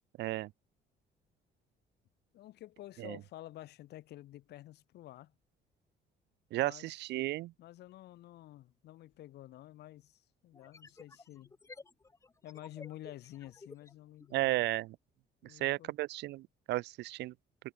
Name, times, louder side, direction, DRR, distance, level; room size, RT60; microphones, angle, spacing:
voice 1, 0.2-0.5 3.0-3.2 6.5-7.5 14.3-15.0 15.4-17.3, right 17 dB, 75° right, 0.6 m, -34 dB
voice 2, 2.3-5.3 6.6-6.9 7.6-11.5 12.4-14.7 15.4-15.9, left 14 dB, 70° left, 1.3 m, -50 dB
sound 1, 9.1-9.2 10.5-14.5, left 3 dB, 15° left, 3.8 m, -54 dB
cardioid pair, 160°, 18 cm